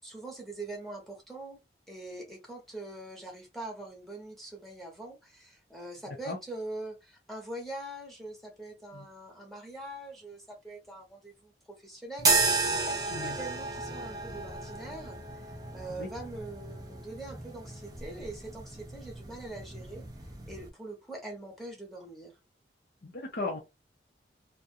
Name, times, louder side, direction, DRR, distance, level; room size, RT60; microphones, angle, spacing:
voice 1, 0.0-1.6 1.9-20.0 20.5-22.3, right 2 dB, ahead, 0.8 m, -43 dB
sound 1, 12.2-20.7, right 3 dB, 20° right, 0.5 m, -33 dB
voice 2, 23.0-23.6, left 3 dB, 55° left, 0.6 m, -36 dB
2.4 x 2.1 x 2.6 m
head